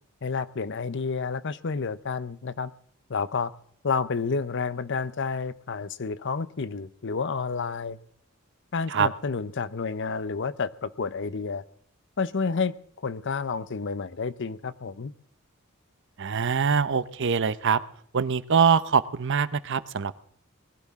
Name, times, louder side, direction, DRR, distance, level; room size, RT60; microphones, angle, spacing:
voice 1, 0.2-2.7 3.1-3.5 3.8-8.0 8.7-11.6 12.2-12.7 13.0-15.1, left 5 dB, 60° left, 16 dB, 0.7 m, -30 dB
voice 2, 16.2-17.8 18.1-20.2, right 6 dB, 60° right, 16 dB, 0.7 m, -23 dB
20.5 x 15.5 x 3.6 m, 0.64 s
head